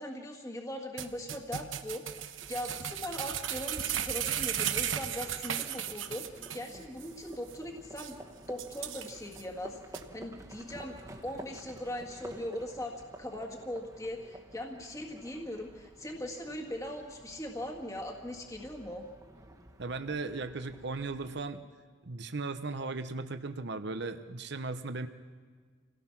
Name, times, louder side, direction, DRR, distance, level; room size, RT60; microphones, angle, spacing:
voice 1, 0.0-8.2 8.5-9.8 10.1-19.0, left 1 dB, 15° left, 1 dB, 1.8 m, -40 dB
sound 1, 1.0-6.7 7.0-7.1 7.5-7.6 8.0-8.1 8.6-9.4 9.9-10.0, right 10 dB, 85° right, 1.0 m, -35 dB
Livestock farm animals working animals, 2.4-21.4, right 1 dB, 20° right, 1.5 m, -52 dB
voice 2, 19.8-21.6 22.0-25.1, right 3 dB, 60° right, 8 dB, 0.9 m, -37 dB
27.5 x 17.5 x 5.9 m, 1.6 s
head